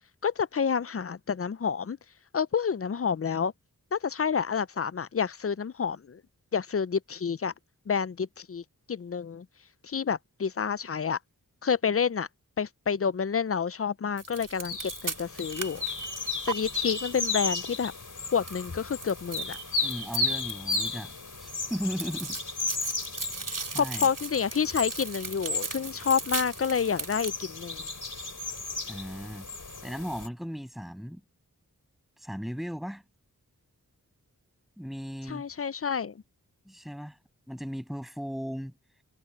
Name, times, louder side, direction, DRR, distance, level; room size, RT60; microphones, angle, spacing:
voice 1, 0.2-2.0 2.3-3.5 3.9-6.2 6.5-7.5 7.9-8.6 8.9-9.5 9.8-11.2 11.6-12.3 12.6-15.8 16.5-17.9 18.3-19.6 23.8-27.8 35.3-36.2, left 6 dB, 40° left, 0.5 m, -29 dB
sound 1, 14.2-16.5 18.5-21.1 21.4-27.3, right 4 dB, 60° right, 3.2 m, -38 dB
sound 2, 14.6-30.3, left 3 dB, 55° left, 4.5 m, -34 dB
voice 2, 19.8-22.4 23.7-24.1 28.9-29.5 29.8-31.2 32.2-33.0 34.8-35.4 36.7-37.2 37.5-38.7, equal, ahead, 6.9 m, -36 dB
wide cardioid pair, 60°, 36 cm